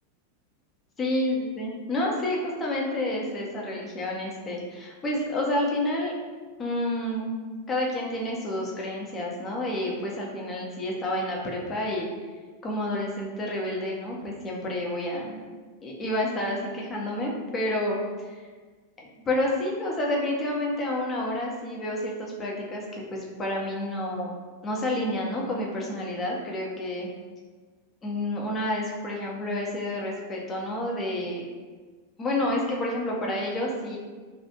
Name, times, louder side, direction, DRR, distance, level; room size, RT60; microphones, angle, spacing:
voice 1, 1.0-6.2 6.6-7.3 7.7-12.1 12.6-15.4 15.8-18.5 19.0-24.3 24.6-27.1 28.0-31.5 32.2-34.0, left 1 dB, 20° left, -2 dB, 0.5 m, -29 dB
2.2 x 2.0 x 2.8 m, 1.4 s
figure-of-eight pair, 90°, 0 cm